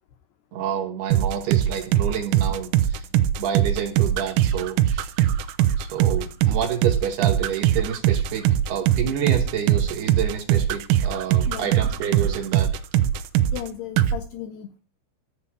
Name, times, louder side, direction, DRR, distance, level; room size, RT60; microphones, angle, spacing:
voice 1, 0.5-3.1 3.4-5.1 5.8-12.7, right 8 dB, 70° right, 5 dB, 2.6 m, -28 dB
sound 1, 1.1-13.7 14.0-14.2, right 11 dB, 90° right, 3.4 m, -21 dB
voice 2, 11.5-11.8 13.5-14.8, left 11 dB, 80° left, 7 dB, 2.4 m, -35 dB
14.0 x 5.6 x 8.4 m, 0.35 s
omnidirectional pair, 5.7 m